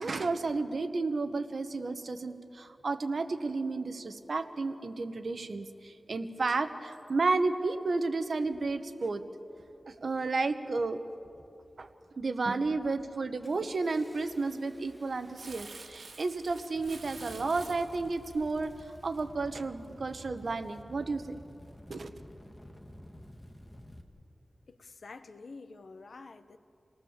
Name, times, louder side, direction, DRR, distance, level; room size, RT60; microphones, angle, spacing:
voice 1, 0.0-9.2 9.9-11.0 11.8-11.9 12.2-18.7 19.0-21.4 21.9-22.2, right 3 dB, 65° right, 8 dB, 1.3 m, -32 dB
Engine starting, 7.7-7.8 8.5-8.8 9.5-9.9 10.2-10.7 11.2-11.7 12.1-12.3 12.6-24.0, left 1 dB, 10° left, 2.2 m, -53 dB
Crumpling crinkling, 15.4-19.9 20.4-20.5, right 4 dB, 85° right, 2.0 m, -50 dB
voice 2, 24.7-26.6, left 3 dB, 70° left, 10 dB, 1.0 m, -48 dB
28.5 x 18.5 x 7.4 m, 2.7 s
wide cardioid pair, 90°, 0 cm